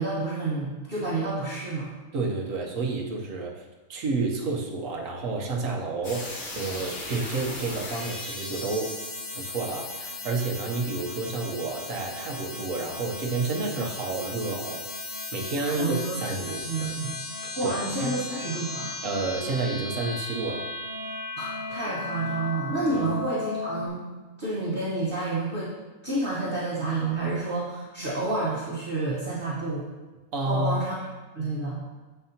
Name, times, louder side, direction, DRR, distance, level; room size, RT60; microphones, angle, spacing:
voice 1, 0.0-1.9 15.7-16.2 16.6-17.1 17.5-18.9 21.4-24.0 24.4-25.7 26.0-29.8 30.4-30.9 31.3-31.8, right 2 dB, 40° right, -9 dB, 1.5 m, -29 dB
voice 2, 2.1-3.6 3.9-8.9 9.3-14.9 15.3-17.0 17.6-17.7 18.0-18.2 19.0-20.7 30.3-30.8, right 3 dB, 70° right, 0 dB, 1.4 m, -30 dB
sound 1, 6.0-23.9, left 2 dB, 40° left, 1.2 m, -36 dB
11.0 x 4.8 x 2.9 m, 1.2 s
omnidirectional pair, 1.4 m